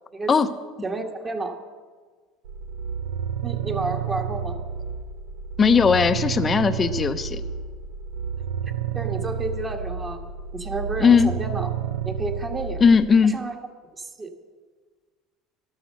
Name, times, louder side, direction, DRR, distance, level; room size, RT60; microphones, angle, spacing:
voice 1, 0.8-1.6 3.4-4.6 8.9-10.3 10.5-11.7 12.1-12.8 13.2-13.6 14.0-14.3, right 3 dB, 25° right, 2 dB, 1.8 m, -31 dB
sound 1, 2.5-13.1, right 7 dB, 90° right, 0.7 m, -30 dB
voice 2, 5.6-7.4 11.0-11.3 12.8-13.4, left 5 dB, 30° left, 11 dB, 0.8 m, -18 dB
13.0 x 12.0 x 6.6 m, 1.5 s
supercardioid pair, 90°, 0 cm